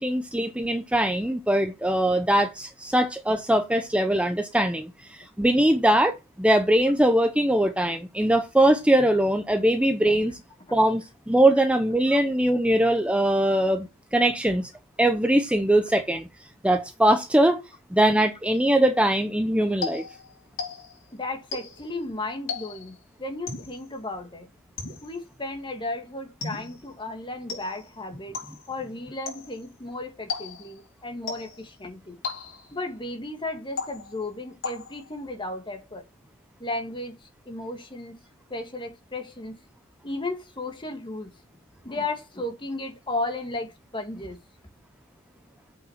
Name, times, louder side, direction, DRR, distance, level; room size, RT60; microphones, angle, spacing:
voice 1, 0.0-10.4 10.7-14.7 15.0-16.3 16.6-17.6 17.9-20.0, right 1 dB, 5° right, 0.7 m, -22 dB
sound 1, 19.8-21.1 21.5-21.9 22.5-23.0 23.5-23.9 24.8-25.3 26.4-26.9 27.5-27.9 28.3-28.7 29.3-29.7 30.3-30.8 31.3-31.7 32.2-32.8 33.8-34.3 34.6-35.1, left 5 dB, 75° left, 4.8 m, -36 dB
voice 2, 21.1-24.5 25.0-28.4 28.7-32.2 32.7-36.1 36.6-38.2 38.5-39.6 40.0-41.3 41.8-44.4, left 2 dB, 25° left, 1.9 m, -34 dB
7.8 x 6.0 x 5.7 m
head